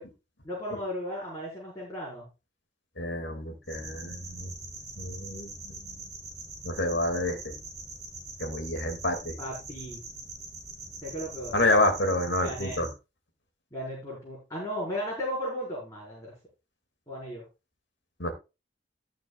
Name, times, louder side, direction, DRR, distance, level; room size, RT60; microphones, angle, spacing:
voice 1, 0.4-2.2 9.4-10.0 11.0-11.6 12.4-12.8 13.7-16.3 17.1-17.4, equal, 20° left, -5 dB, 5.1 m, -35 dB
voice 2, 3.0-4.5 5.0-6.1 6.6-7.5 8.4-9.4 11.5-12.9 18.2-18.3, left 1 dB, 75° left, 6 dB, 2.5 m, -28 dB
sound 1, 3.6-12.9, right 2 dB, 20° right, 5.9 m, -43 dB
18.5 x 6.6 x 2.4 m, 0.28 s
head